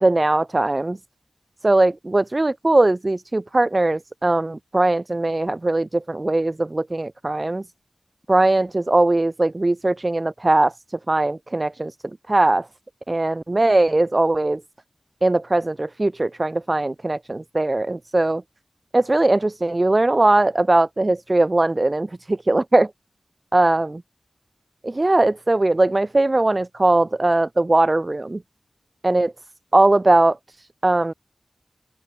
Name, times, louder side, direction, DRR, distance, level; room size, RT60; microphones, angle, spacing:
voice 1, 0.0-1.0 1.6-7.6 8.3-11.9 12.3-12.7 13.1-14.6 15.2-18.4 18.9-22.9 23.5-23.9 24.8-28.4 29.0-29.3 29.7-31.1, right 2 dB, 35° right, 1.1 m, -20 dB
open air
wide cardioid pair, 55°, 0 cm